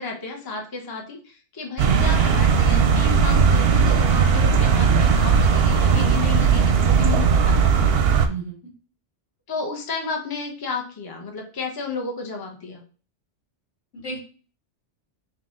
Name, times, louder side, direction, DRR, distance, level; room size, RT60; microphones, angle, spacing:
voice 1, 0.0-7.9 9.5-12.8, left 4 dB, 20° left, 1 dB, 0.7 m, -32 dB
sound 1, 1.8-8.3, right 6 dB, 65° right, 0.7 m, -18 dB
voice 2, 8.2-8.6 13.9-14.2, right 4 dB, 85° left, -2 dB, 2.1 m, -32 dB
3.8 x 3.2 x 3.7 m, 0.38 s
omnidirectional pair, 1.2 m